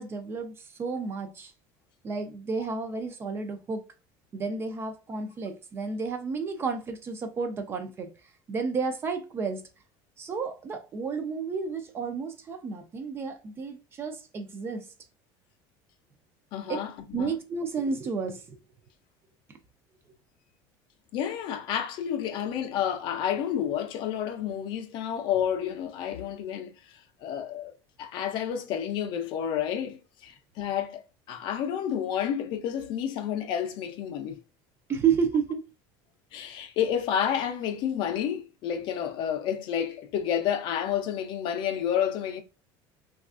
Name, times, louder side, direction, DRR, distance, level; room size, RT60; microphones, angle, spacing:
voice 1, 0.0-1.5 2.0-3.8 4.3-8.1 8.5-9.6 10.2-14.9 16.7-16.8 17.1-18.6 34.9-35.6, right 5 dB, 25° right, 0.3 m, -31 dB
voice 2, 16.5-17.3 21.1-26.8 27.2-27.7 28.0-31.0 31.3-34.4 36.3-42.4, left 9 dB, 50° left, 0.5 m, -30 dB
3.3 x 2.3 x 2.4 m
cardioid pair, 165°, 10 cm